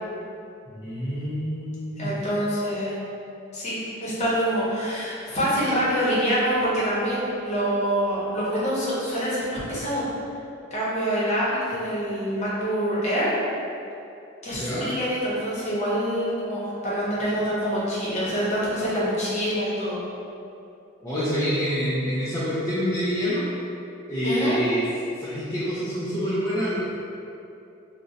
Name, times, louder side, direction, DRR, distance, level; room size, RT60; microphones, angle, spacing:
voice 1, 0.7-2.1 14.5-14.9 21.0-23.5 24.1-24.8 25.2-26.8, equal, 15° left, -11 dB, 0.4 m, -27 dB
voice 2, 2.0-3.0 3.5-10.0 10.7-13.4 14.4-20.0 24.2-24.6, equal, 35° left, -8 dB, 0.8 m, -26 dB
2.5 x 2.1 x 3.9 m, 2.7 s
head